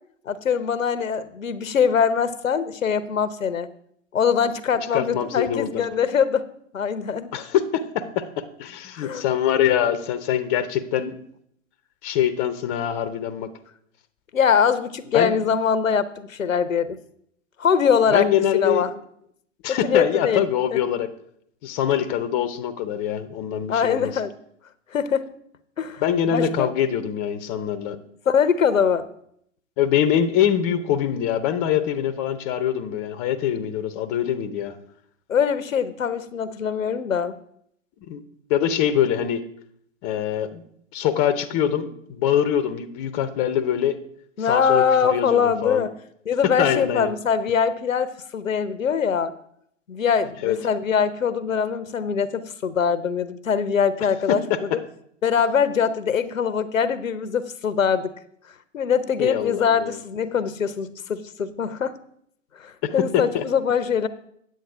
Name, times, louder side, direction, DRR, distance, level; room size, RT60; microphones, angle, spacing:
voice 1, 0.3-3.7 4.1-6.5 6.7-7.3 8.9-9.2 14.3-17.0 17.6-18.2 18.5-18.9 19.7-20.4 20.7-20.8 23.7-24.3 24.9-25.3 25.8-26.0 26.3-26.7 28.3-29.1 35.3-37.3 44.4-45.9 46.3-49.3 49.9-54.4 55.2-58.1 58.7-62.0 62.6-64.1, left 7 dB, 80° left, 14 dB, 0.8 m, -22 dB
voice 2, 4.9-5.8 7.3-11.2 12.0-13.5 15.1-15.4 18.1-18.9 19.6-21.1 21.6-24.1 26.0-28.0 29.8-34.8 38.1-38.2 38.5-39.4 40.0-40.6 40.9-44.0 44.4-45.9 46.6-47.1 50.4-50.6 54.5-54.6 59.2-60.0 63.1-63.4, left 9 dB, 30° left, 12 dB, 0.7 m, -24 dB
9.4 x 7.8 x 4.8 m, 0.68 s
figure-of-eight pair, 115°, 39 cm